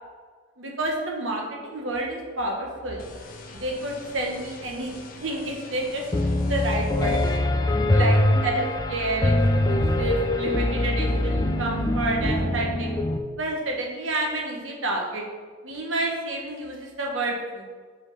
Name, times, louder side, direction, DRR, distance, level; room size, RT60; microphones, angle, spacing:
voice 1, 0.6-3.1 3.5-4.9 5.2-7.2 7.9-9.3 9.6-12.9 13.4-15.2 15.6-17.7, right 1 dB, 85° right, 0 dB, 1.4 m, -29 dB
sound 1, 3.0-7.4, left 3 dB, 45° left, 0.8 m, -44 dB
Piano, 6.1-13.2, left 1 dB, 20° left, 0.3 m, -23 dB
5.0 x 4.9 x 5.5 m, 1.5 s
head